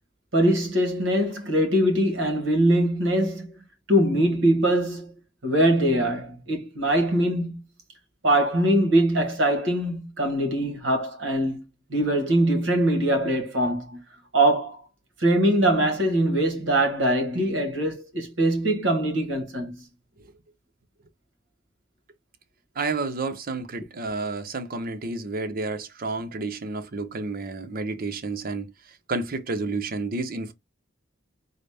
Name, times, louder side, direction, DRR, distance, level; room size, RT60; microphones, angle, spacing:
voice 1, 0.3-3.5 3.9-5.1 5.4-7.6 8.2-14.0 14.3-14.8 15.2-19.8, right 1 dB, 70° right, 1.2 m, -22 dB
voice 2, 22.8-28.7 29.1-30.5, right 3 dB, 45° right, 0.6 m, -30 dB
3.9 x 2.0 x 3.3 m
head